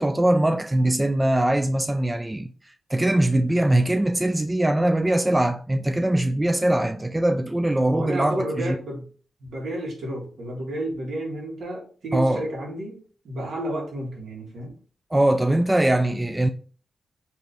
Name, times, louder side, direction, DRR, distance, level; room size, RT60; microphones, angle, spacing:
voice 1, 0.0-2.5 2.9-8.8 12.1-12.4 15.1-16.5, right 1 dB, 15° right, 0.3 m, -22 dB
voice 2, 7.9-9.0 9.5-13.0 13.2-14.8, right 1 dB, 80° right, 1.8 m, -31 dB
4.9 x 3.1 x 3.4 m
wide cardioid pair, 110°, 0 cm